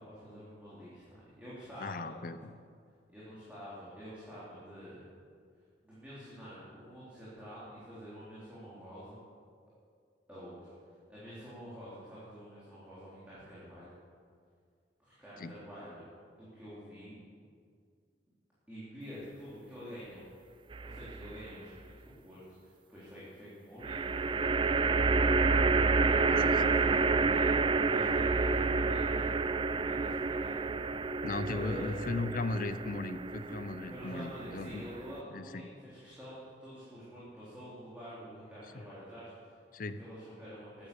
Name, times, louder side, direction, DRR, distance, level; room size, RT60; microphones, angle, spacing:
voice 1, 0.0-2.1 3.1-5.0 5.8-9.2 10.3-10.5 10.8-13.9 15.0-16.1 16.3-17.3 18.7-20.3 20.8-21.9 22.2-24.7 25.2-25.5 25.8-29.3 29.7-30.6 31.5-31.9 33.9-39.6 40.0-40.9, equal, 10° right, -11 dB, 3.6 m, -48 dB
voice 2, 1.8-2.4 15.4-15.5 26.3-26.6 31.2-34.9 35.3-35.6 39.7-40.0, left 3 dB, 50° left, 11 dB, 0.6 m, -37 dB
sound 1, 20.7-21.4 23.8-35.2, right 4 dB, 25° right, 0.3 m, -29 dB
13.0 x 10.5 x 7.0 m, 2.1 s
head